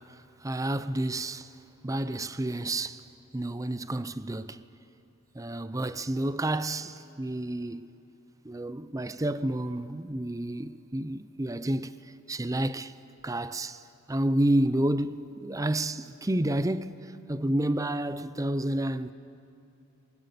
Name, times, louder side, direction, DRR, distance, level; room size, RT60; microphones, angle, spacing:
voice 1, 0.0-1.5 1.8-3.0 3.3-4.6 5.3-7.9 8.4-11.9 12.3-12.9 13.2-13.8 14.1-17.0 17.3-19.1, right 1 dB, 15° right, 0.5 m, -30 dB
27.5 x 23.5 x 8.3 m
head